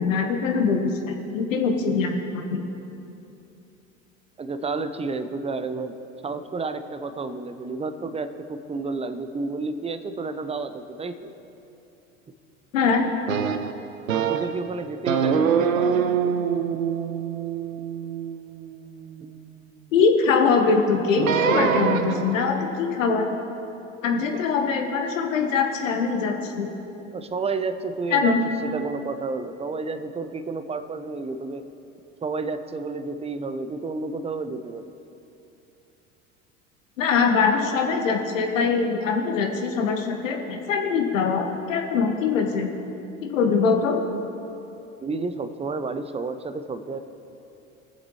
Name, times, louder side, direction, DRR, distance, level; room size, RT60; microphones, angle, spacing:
voice 1, 0.0-2.7 12.7-13.0 19.9-23.3 24.0-26.7 28.1-28.4 37.0-42.7 43.2-44.0, left 5 dB, 75° left, 3 dB, 1.4 m, -23 dB
voice 2, 4.4-5.9 6.2-11.3 14.2-16.4 24.3-24.4 27.1-28.3 28.6-31.6 32.2-34.9 45.0-47.0, right 3 dB, 15° right, 11 dB, 0.6 m, -31 dB
sound 1, 13.3-14.7 15.1-19.4 21.2-22.5, right 7 dB, 90° right, 0.6 m, -25 dB
20.5 x 7.3 x 3.1 m, 2.9 s
hypercardioid pair, 75°, 39 cm